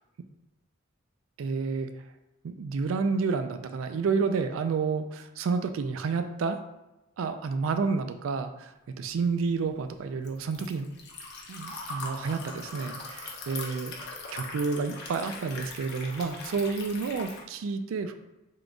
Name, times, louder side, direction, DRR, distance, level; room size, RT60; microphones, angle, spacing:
voice 1, 1.4-1.9 2.4-6.6 7.2-10.9 11.5-13.9 14.3-18.1, right 4 dB, 80° right, 8 dB, 0.3 m, -30 dB
Liquid, 9.2-17.4, left 3 dB, 55° left, 0.7 m, -41 dB
3.7 x 2.3 x 3.7 m, 0.98 s
head